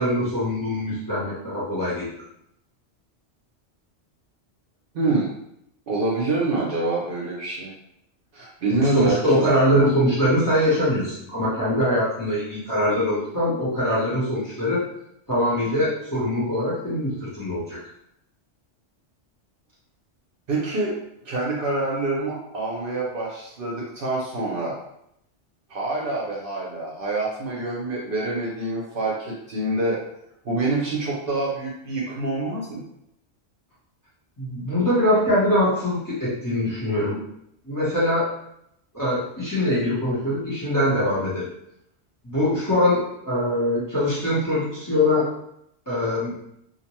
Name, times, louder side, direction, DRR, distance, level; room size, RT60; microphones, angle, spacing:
voice 1, 0.0-2.1 8.7-14.8 15.3-17.8 34.4-37.2 37.6-38.3 38.9-41.5 42.2-45.3 45.9-46.3, left 1 dB, 20° left, -9 dB, 0.8 m, -23 dB
voice 2, 4.9-5.3 5.9-7.7 8.3-9.5 20.5-20.9 21.2-24.7 25.7-30.0 30.4-32.8, right 2 dB, 60° right, -4 dB, 0.7 m, -26 dB
2.5 x 2.1 x 2.9 m, 0.76 s
omnidirectional pair, 1.2 m